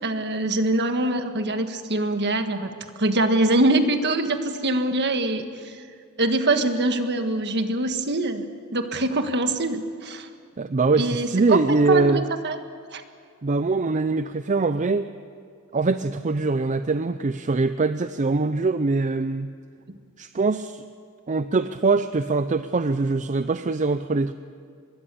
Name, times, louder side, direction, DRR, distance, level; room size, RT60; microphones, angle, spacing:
voice 1, 0.0-2.7 3.0-5.8 6.2-8.4 8.7-10.3 11.0-12.6 12.9-13.0 19.9-20.0, right 2 dB, 55° right, 7 dB, 1.6 m, -24 dB
voice 2, 10.6-12.2 13.4-15.1 15.7-19.5 20.2-20.8 21.3-24.3, right 3 dB, 35° right, 11 dB, 0.5 m, -23 dB
24.5 x 21.5 x 6.9 m, 2.2 s
head